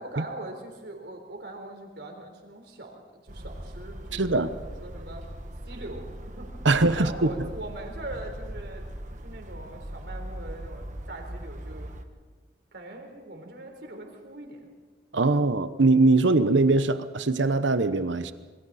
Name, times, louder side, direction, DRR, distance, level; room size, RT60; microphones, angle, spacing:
voice 1, 0.0-5.2 5.6-6.5 6.9-11.9 12.7-14.6, right 2 dB, 65° right, 3 dB, 4.1 m, -41 dB
sound 1, 3.3-12.0, right 1 dB, 40° right, 1.4 m, -40 dB
voice 2, 4.1-4.5 6.6-7.3 15.1-18.3, right 3 dB, 90° right, 12 dB, 1.0 m, -22 dB
27.5 x 23.0 x 4.2 m, 1.4 s
head